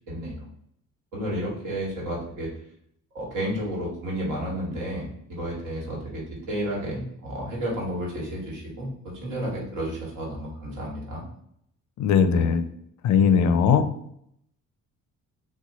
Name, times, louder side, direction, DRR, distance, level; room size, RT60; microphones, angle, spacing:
voice 1, 0.1-0.5 1.1-2.5 3.1-11.2, equal, 90° right, -3 dB, 1.4 m, -31 dB
voice 2, 12.0-12.6 13.0-13.8, left 6 dB, 70° left, 10 dB, 0.5 m, -19 dB
3.0 x 2.2 x 4.0 m, 0.72 s
cardioid pair, 90°, 30 cm